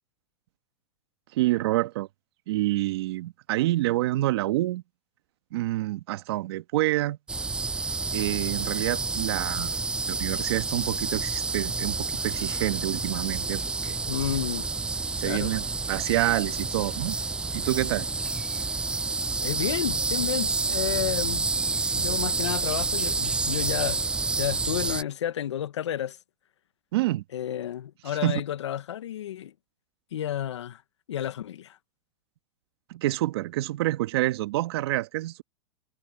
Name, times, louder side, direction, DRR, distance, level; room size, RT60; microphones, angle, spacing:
voice 1, 1.3-2.1 2.5-4.8 5.5-7.2 8.1-9.7 10.1-14.0 15.2-17.1 17.5-18.1 26.9-27.2 28.2-28.4 32.9-35.4, right 16 dB, 65° right, 1.3 m, -27 dB
sound 1, 7.3-25.0, right 3 dB, 5° right, 0.3 m, -29 dB
voice 2, 14.1-14.7 15.2-15.5 19.4-21.5 21.9-24.0 24.4-26.2 27.3-29.5 30.1-30.8 31.1-31.8, left 10 dB, 85° left, 1.0 m, -31 dB
hypercardioid pair, 130°, 15 cm